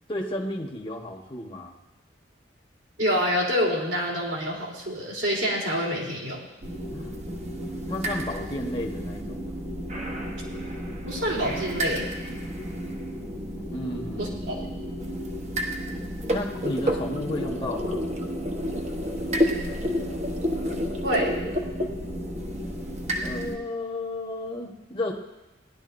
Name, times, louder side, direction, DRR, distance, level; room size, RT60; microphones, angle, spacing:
voice 1, 0.1-1.7 6.9-7.1 7.9-9.5 13.7-14.8 16.3-18.0 23.2-25.1, left 1 dB, 25° left, -1 dB, 1.2 m, -33 dB
voice 2, 3.0-6.4 11.0-12.1 14.2-14.6 21.0-21.4, equal, 75° right, -3 dB, 3.5 m, -27 dB
sound 1, 6.6-23.6, equal, 35° right, 1.1 m, -31 dB
18.0 x 11.5 x 2.6 m, 0.99 s
head